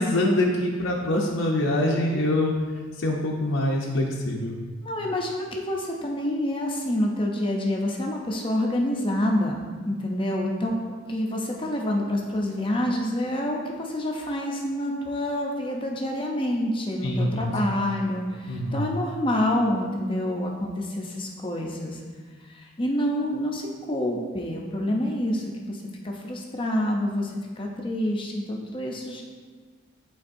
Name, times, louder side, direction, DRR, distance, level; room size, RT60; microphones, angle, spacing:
voice 1, 0.0-2.5 3.0-4.6 17.0-17.4 18.5-18.8, left 1 dB, 60° left, -2 dB, 0.7 m, -24 dB
voice 2, 4.8-10.8 11.1-22.0 22.5-29.2, left 1 dB, 25° left, 0 dB, 0.6 m, -27 dB
11.0 x 3.9 x 2.6 m, 1.5 s
head